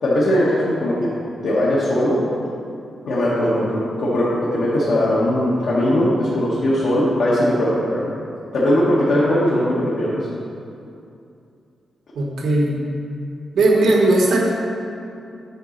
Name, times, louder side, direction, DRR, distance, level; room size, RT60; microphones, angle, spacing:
voice 1, 0.0-0.9 1.4-2.2 3.0-8.1 8.5-10.2, left 1 dB, 70° left, -9 dB, 1.5 m, -19 dB
voice 2, 12.1-12.8 13.5-14.4, right 2 dB, 80° right, -1 dB, 1.3 m, -17 dB
9.4 x 4.1 x 6.6 m, 2.6 s
wide cardioid pair, 160°, 0 cm